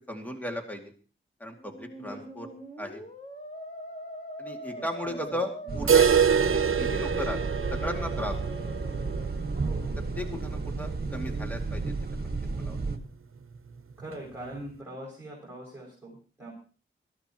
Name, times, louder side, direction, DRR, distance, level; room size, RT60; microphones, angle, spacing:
voice 1, 0.1-0.8 1.4-2.5 2.8-3.0 4.4-6.1 6.8-7.4 7.7-8.3 10.2-11.9 12.2-12.3 12.6-12.8, left 1 dB, 5° left, 1 dB, 2.3 m, -36 dB
Musical instrument, 1.5-9.5, right 1 dB, 35° left, 3.4 m, -42 dB
voice 2, 4.6-5.4 5.6-5.9 9.6-10.0 14.0-16.5, right 1 dB, 10° right, -6 dB, 6.3 m, -43 dB
sound 1, 5.7-13.0, right 3 dB, 50° right, 1.7 m, -33 dB
sound 2, 5.9-11.7 12.0-12.1 12.4-12.5 13.0-13.1 14.0-14.1, right 7 dB, 75° right, 0.8 m, -26 dB
22.0 x 14.0 x 3.0 m, 0.38 s
wide cardioid pair, 100°, 21 cm